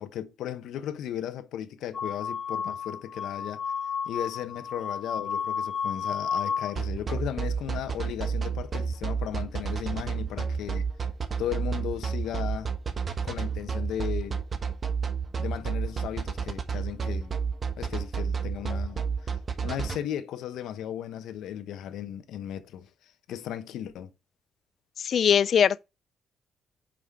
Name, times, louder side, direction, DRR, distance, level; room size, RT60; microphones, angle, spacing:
voice 1, 0.0-3.6 4.0-10.9 11.4-12.7 13.2-14.4 15.4-17.3 17.8-19.4 19.6-24.1, left 10 dB, 80° left, 0.9 m, -36 dB
sound 1, 1.9-6.7, left 7 dB, 35° left, 1.6 m, -32 dB
sound 2, 6.8-20.0, right 6 dB, 40° right, 1.1 m, -30 dB
voice 2, 25.0-25.8, left 8 dB, 55° left, 0.3 m, -21 dB
5.9 x 5.0 x 4.8 m
cardioid pair, 90°, 0 cm